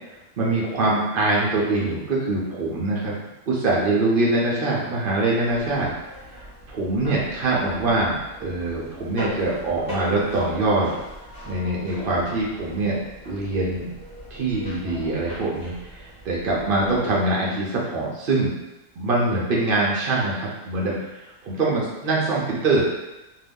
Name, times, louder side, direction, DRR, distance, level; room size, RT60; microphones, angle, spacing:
voice 1, 0.1-3.2 3.5-5.9 6.3-10.9 11.5-13.0 13.3-13.9 14.3-18.5 19.0-22.8, right 2 dB, 60° right, -4 dB, 0.5 m, -24 dB
sound 1, 5.4-17.0, equal, 5° left, 1.2 m, -40 dB
2.6 x 2.2 x 3.5 m, 1.0 s
omnidirectional pair, 1.5 m